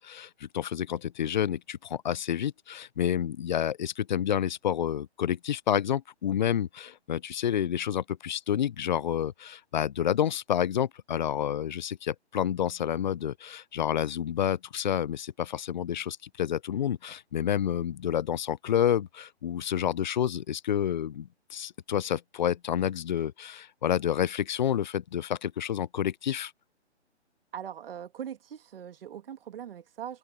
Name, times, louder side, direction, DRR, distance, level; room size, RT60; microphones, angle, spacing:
voice 1, 0.0-26.5, left 9 dB, 40° left, 0.4 m, -29 dB
voice 2, 27.5-30.2, right 9 dB, 55° right, 2.2 m, -41 dB
hypercardioid pair, 145°, 35 cm